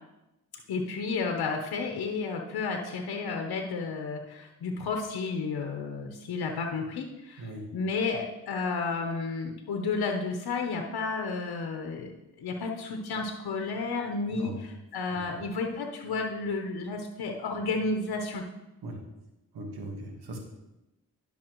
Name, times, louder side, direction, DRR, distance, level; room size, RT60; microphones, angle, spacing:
voice 1, 0.7-12.1 12.4-18.4, left 4 dB, 75° left, 3 dB, 0.9 m, -32 dB
voice 2, 7.4-7.7 14.3-14.6 15.1-15.4 18.8-19.0 19.5-20.4, right 2 dB, 85° right, 2 dB, 1.5 m, -39 dB
10.5 x 5.7 x 3.0 m, 0.96 s
supercardioid pair, 45°, 38 cm